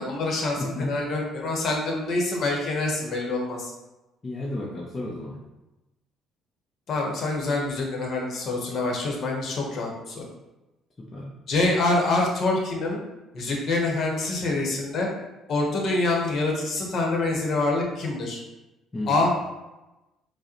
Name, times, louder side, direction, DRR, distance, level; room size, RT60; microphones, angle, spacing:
voice 1, 0.0-3.7 6.9-10.2 11.5-13.0 13.3-15.1 15.5-18.4 19.1-19.3, left 2 dB, 60° left, -1 dB, 1.0 m, -26 dB
voice 2, 0.6-0.9 4.2-5.4 11.0-11.3 18.9-19.3, left 1 dB, 30° left, -4 dB, 0.7 m, -32 dB
4.5 x 2.2 x 3.0 m, 1.0 s
supercardioid pair, 65°, 0 cm